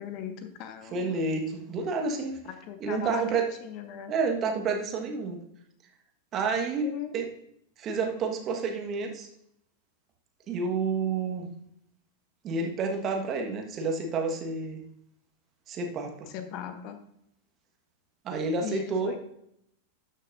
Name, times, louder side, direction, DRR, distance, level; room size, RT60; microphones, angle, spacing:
voice 1, 0.0-1.3 2.4-4.1 6.8-7.2 16.3-17.0 18.6-19.2, left 9 dB, 40° left, 8 dB, 0.9 m, -39 dB
voice 2, 0.9-2.4 2.8-3.5 4.1-5.4 6.3-7.3 7.8-9.3 10.5-11.5 12.4-14.8 15.7-16.3 18.2-19.1, right 4 dB, 30° right, 2 dB, 1.5 m, -29 dB
12.5 x 6.4 x 2.6 m, 0.74 s
figure-of-eight pair, 90°, 0 cm